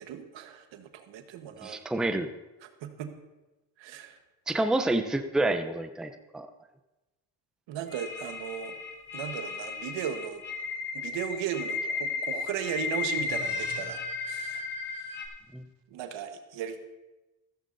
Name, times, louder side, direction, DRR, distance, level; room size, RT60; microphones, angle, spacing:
voice 1, 0.0-1.8 2.6-3.1 3.8-4.2 7.7-8.8 9.1-10.4 10.9-14.0 14.3-14.7 15.0-15.2 15.9-16.8, right 9 dB, 70° right, 7 dB, 1.4 m, -36 dB
voice 2, 1.6-2.3 4.5-6.5 15.5-15.6, right 2 dB, ahead, 7 dB, 0.7 m, -28 dB
sound 1, 7.9-15.3, left 4 dB, 25° left, 4.7 m, -34 dB
15.0 x 14.0 x 2.7 m, 1.1 s
supercardioid pair, 90°, 46 cm